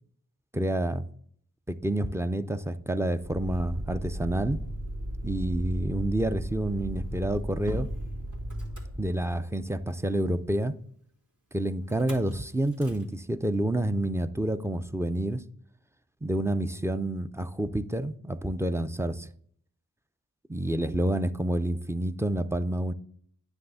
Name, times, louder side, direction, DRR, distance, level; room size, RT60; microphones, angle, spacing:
voice 1, 0.5-1.1 1.7-4.6 5.2-7.9 9.0-10.7 11.5-15.4 16.2-19.3 20.5-22.9, right 1 dB, 10° right, 0.4 m, -28 dB
Motor vehicle (road), 3.2-9.6 11.9-12.3 12.7-13.0, equal, 60° right, 2.5 m, -36 dB
9.4 x 3.4 x 6.8 m
wide cardioid pair, 70°, 34 cm